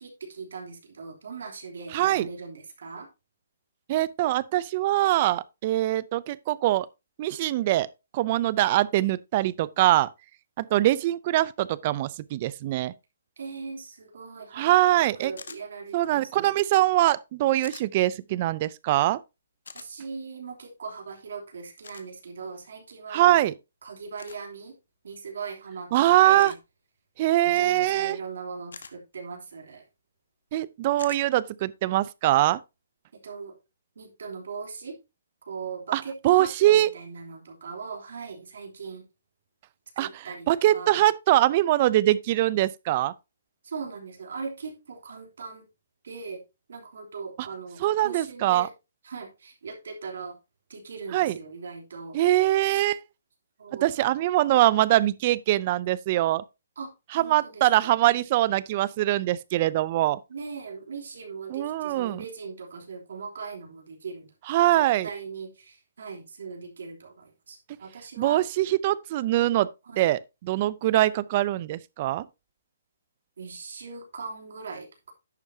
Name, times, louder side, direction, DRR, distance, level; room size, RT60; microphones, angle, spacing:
voice 1, 0.0-3.1 13.4-16.5 19.7-23.5 23.8-24.7 25.0-26.5 27.4-29.8 33.1-33.6 33.9-35.0 35.4-39.0 40.0-41.0 43.6-45.6 46.0-46.4 46.7-48.7 49.0-50.4 50.7-52.2 53.6-53.9 56.8-58.0 60.3-64.3 64.7-68.5 69.8-70.1 73.4-75.1, right 5 dB, 70° right, 3.0 m, -39 dB
voice 2, 1.9-2.3 3.9-6.9 7.2-7.9 8.1-10.1 10.6-12.9 14.6-15.3 15.9-19.2 23.1-23.5 25.9-26.5 27.2-28.2 30.5-32.6 35.9-36.9 40.0-40.1 40.5-43.1 47.8-48.7 51.1-51.3 52.1-53.0 53.8-56.4 57.1-60.2 61.5-62.2 64.5-65.1 68.2-69.7 70.0-72.2, right 15 dB, 30° right, 0.4 m, -23 dB
sound 1, 15.4-15.6 17.6-17.9 19.7-19.9 21.8-22.1 24.2-24.4 26.4-26.7 28.7-28.9 31.0-31.2, left 5 dB, 90° left, 1.3 m, -43 dB
11.0 x 8.0 x 2.7 m
hypercardioid pair, 165°, 0 cm